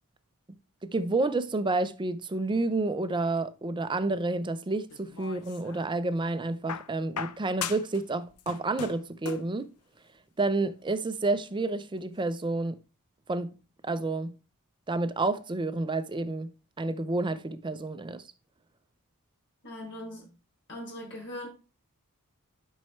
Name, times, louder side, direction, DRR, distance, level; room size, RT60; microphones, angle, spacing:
voice 1, 0.8-9.7 10.4-12.8 13.3-13.5 13.8-14.4 14.9-16.5 16.8-18.2, right 2 dB, 20° right, 0.5 m, -29 dB
sound 1, 4.9-5.9 6.7-8.0 8.3-9.6 10.6-10.7, left 7 dB, 85° left, 0.6 m, -38 dB
voice 2, 19.6-20.3 20.7-21.5, left 1 dB, 55° left, 4.7 m, -40 dB
11.0 x 5.5 x 3.1 m
head